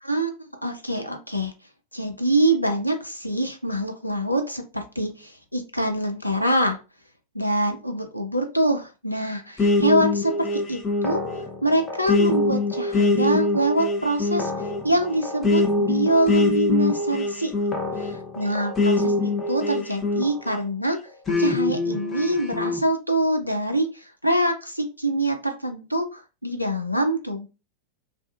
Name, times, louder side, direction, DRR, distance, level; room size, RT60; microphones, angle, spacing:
voice 1, 0.0-1.5 1.9-6.8 7.3-11.2 11.6-14.5 14.8-17.5 18.4-21.0 21.4-27.5, right 1 dB, 90° left, 5 dB, 0.4 m, -25 dB
sound 1, 9.6-20.6 21.3-22.8, left 2 dB, 20° left, 0.7 m, -24 dB
2.4 x 2.3 x 2.4 m, 0.31 s
figure-of-eight pair, 90°, 0 cm